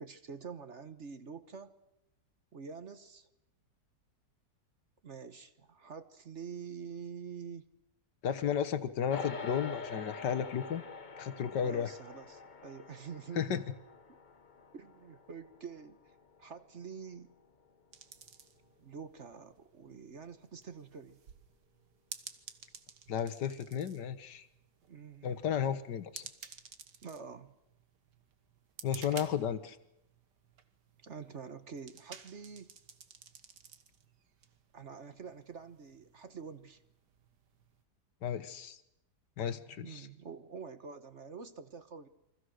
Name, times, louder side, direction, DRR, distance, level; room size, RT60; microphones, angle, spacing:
voice 1, 0.0-1.7 2.5-3.3 5.0-7.7 11.5-13.6 14.1-14.2 14.7-16.0 16.4-17.3 18.8-21.2 24.9-25.4 27.0-27.6 31.0-32.7 34.7-36.8 39.8-42.1, right 6 dB, 45° right, 11 dB, 1.4 m, -47 dB
voice 2, 8.2-10.8 11.2-11.9 13.4-13.6 23.1-24.5 25.2-26.2 28.8-29.8 38.2-38.8 39.4-40.1, left 8 dB, 75° left, 12 dB, 1.8 m, -33 dB
sound 1, 9.1-18.6, left 4 dB, 30° left, 1.0 m, -47 dB
sound 2, 17.9-37.8, right 7 dB, 75° right, 2.0 m, -54 dB
29.0 x 24.5 x 6.4 m, 0.87 s
omnidirectional pair, 1.9 m